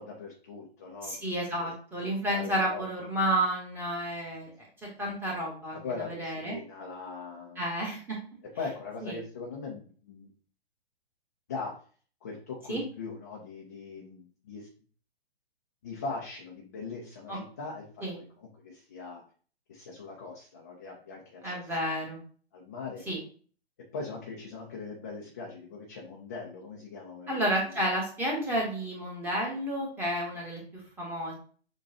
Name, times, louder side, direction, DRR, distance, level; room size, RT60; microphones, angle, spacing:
voice 1, 0.0-1.3 1.6-1.7 2.3-2.9 5.7-7.6 8.6-10.3 11.5-11.8 12.2-14.7 15.8-19.2 19.7-21.8 22.5-23.1 23.9-27.9, left 4 dB, 15° left, -2 dB, 0.4 m, -40 dB
voice 2, 1.0-4.7 5.0-6.6 7.6-8.2 9.0-9.2 12.7-12.8 17.3-17.4 18.0-18.2 21.4-22.2 23.1-23.2 27.3-31.3, right 1 dB, 5° right, -3 dB, 1.1 m, -31 dB
6.6 x 2.3 x 2.7 m, 0.42 s
figure-of-eight pair, 120°, 32 cm